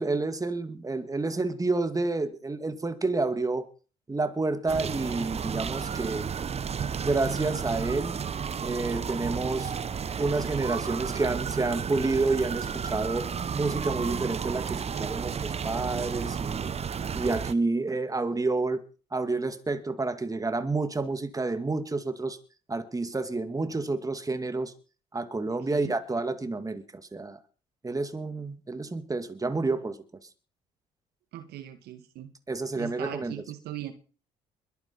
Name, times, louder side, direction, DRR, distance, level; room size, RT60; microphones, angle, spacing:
voice 1, 0.0-3.7 4.1-6.3 7.0-8.2 8.6-9.7 10.2-16.7 17.1-18.8 19.1-22.4 22.7-24.7 25.1-27.4 27.8-30.0 32.5-33.3, right 3 dB, 20° right, 2.2 m, -29 dB
sound 1, 4.7-17.5, right 7 dB, 35° right, 0.9 m, -32 dB
voice 2, 31.3-32.3 32.8-33.9, right 13 dB, 70° right, 1.8 m, -39 dB
22.0 x 9.3 x 4.5 m
hypercardioid pair, 55°, 17 cm